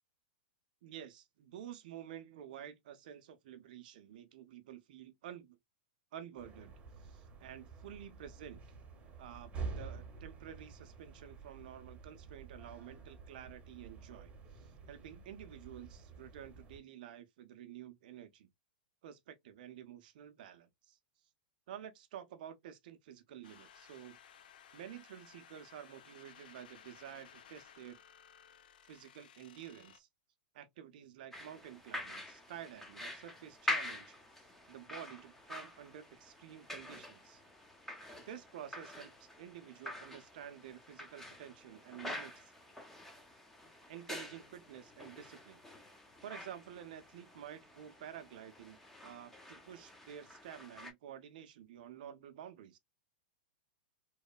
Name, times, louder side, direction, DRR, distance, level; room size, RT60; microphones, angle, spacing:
voice 1, 0.8-5.6 6.1-6.7 7.0-8.6 9.2-18.5 19.0-21.0 21.7-24.2 24.7-28.0 28.9-30.1 30.5-37.4 38.3-42.5 43.9-45.6 46.2-52.8, right 10 dB, 65° right, 0.5 m, -50 dB
sound 1, 6.4-16.8, right 5 dB, 25° right, 0.8 m, -49 dB
sound 2, 23.4-30.0, left 8 dB, 70° left, 0.5 m, -59 dB
sound 3, 31.3-50.9, left 1 dB, 5° left, 0.6 m, -46 dB
2.9 x 2.1 x 2.3 m
hypercardioid pair, 115°, 5 cm